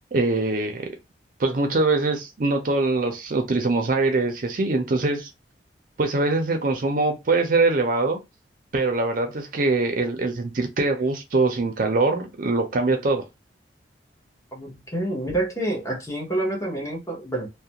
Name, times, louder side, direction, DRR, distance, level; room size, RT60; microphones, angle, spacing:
voice 1, 0.1-0.9 1.4-5.3 6.0-8.2 8.7-13.2, right 3 dB, 50° right, 0.5 m, -23 dB
voice 2, 14.5-17.5, right 1 dB, 20° left, 0.8 m, -28 dB
2.4 x 2.1 x 2.8 m
head